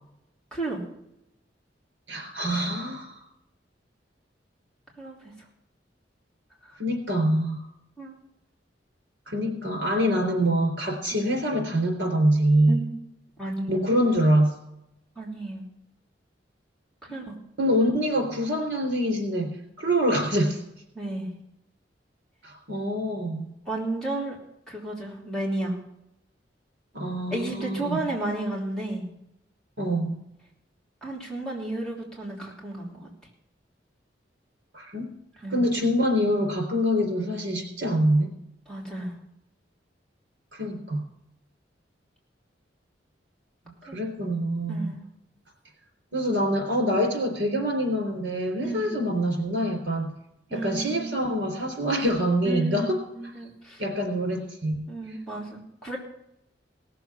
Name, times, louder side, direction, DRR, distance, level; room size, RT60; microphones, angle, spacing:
voice 1, 2.1-3.2 6.8-7.6 9.3-12.8 13.7-14.5 17.6-19.5 19.8-20.6 22.4-23.5 26.9-28.0 29.8-30.2 34.7-35.1 35.5-38.3 40.5-41.0 43.8-44.9 46.1-50.1 50.5-53.0 53.8-54.9, equal, 75° right, 3 dB, 3.7 m, -25 dB
voice 2, 5.0-5.3 6.6-6.7 8.0-8.2 11.1-11.2 12.7-12.8 13.4-13.9 15.1-15.7 17.0-17.4 20.9-21.3 23.6-24.4 24.7-25.8 27.3-29.1 31.0-33.1 35.4-35.6 38.7-39.1 43.9-44.0 44.7-45.0 48.6-48.9 50.5-51.2 52.4-53.8 54.9-56.0, right 2 dB, 5° left, -5 dB, 3.2 m, -33 dB
18.0 x 7.0 x 6.1 m, 0.83 s
head